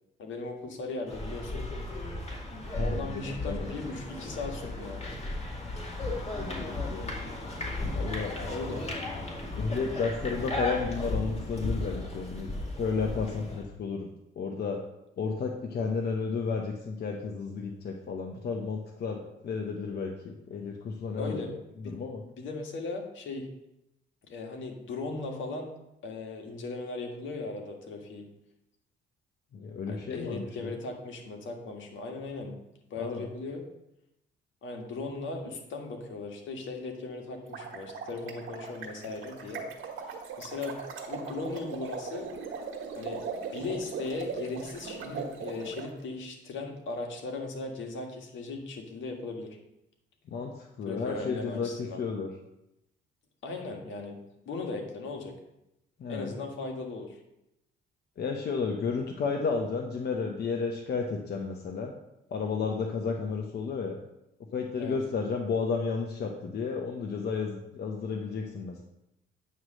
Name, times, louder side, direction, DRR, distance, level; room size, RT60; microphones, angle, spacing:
voice 1, 0.2-1.7 2.8-5.1 8.3-8.8 21.2-21.5 21.8-21.9 22.4-23.5 24.3-25.7 26.0-28.3 29.9-32.6 32.9-33.6 34.6-39.7 40.4-40.8 41.1-42.3 43.0-43.2 43.5-49.6 50.9-52.0 53.4-54.2 54.4-55.3 56.1-57.2 64.8-65.0, left 3 dB, 75° left, 2 dB, 1.5 m, -37 dB
sound 1, 1.1-13.6, left 2 dB, 30° left, 2.1 m, -35 dB
voice 2, 2.7-3.7 6.3-7.2 7.9-8.3 9.6-12.5 12.8-14.1 14.4-14.8 15.2-21.4 21.8-22.2 29.5-30.8 33.0-33.3 50.3-52.3 56.0-56.3 58.2-61.9 62.3-64.0 64.5-68.8, left 5 dB, 55° left, 1 dB, 0.8 m, -32 dB
sound 2, 37.4-45.9, right 5 dB, 80° right, 1.4 m, -39 dB
9.2 x 3.2 x 6.4 m, 0.87 s
cardioid pair, 90°, 20 cm